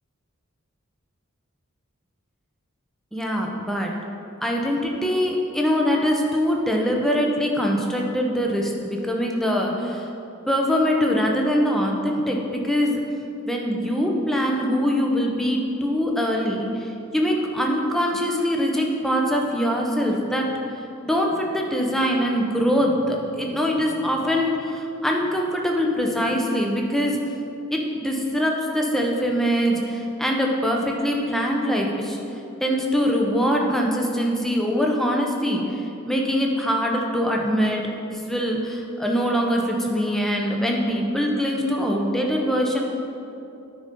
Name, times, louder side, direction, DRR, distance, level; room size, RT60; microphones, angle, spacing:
voice 1, 3.1-3.9 4.4-10.0 10.5-13.0 13.4-20.5 21.0-27.2 27.7-32.2 32.6-35.8 36.1-42.8, equal, ahead, 0 dB, 0.8 m, -23 dB
9.6 x 4.1 x 5.3 m, 2.7 s
head